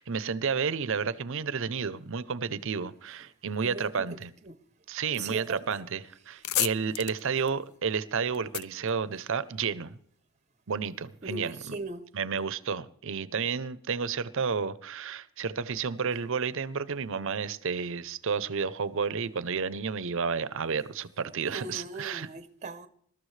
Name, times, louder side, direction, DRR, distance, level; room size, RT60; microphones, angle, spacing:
voice 1, 0.0-4.3 4.9-10.0 10.7-11.7 12.1-22.3, right 5 dB, 65° right, 0.7 m, -31 dB
voice 2, 3.6-4.6 5.2-5.8 6.3-6.4 11.2-12.1 21.4-22.9, right 3 dB, 35° right, 0.8 m, -40 dB
sound 1, 5.7-5.8 6.2-9.8, left 14 dB, 85° left, 0.4 m, -34 dB
21.0 x 13.0 x 3.3 m
head